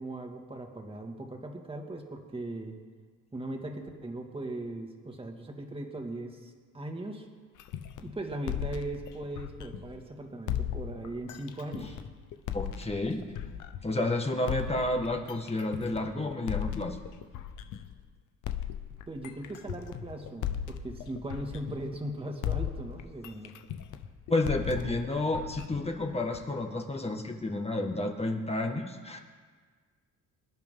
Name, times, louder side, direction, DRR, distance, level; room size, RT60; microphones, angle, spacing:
voice 1, 0.0-2.7 3.3-7.3 8.0-12.0 19.1-23.5, right 1 dB, 20° right, 2 dB, 2.2 m, -39 dB
sound 1, 7.6-10.0 10.5-14.0 14.5-18.0 18.4-22.1 22.4-26.5, left 10 dB, 85° left, 1.0 m, -37 dB
voice 2, 12.5-17.0 24.3-29.2, left 2 dB, 20° left, 3 dB, 1.7 m, -31 dB
25.0 x 10.5 x 3.8 m, 1.5 s
cardioid pair, 90°, 30 cm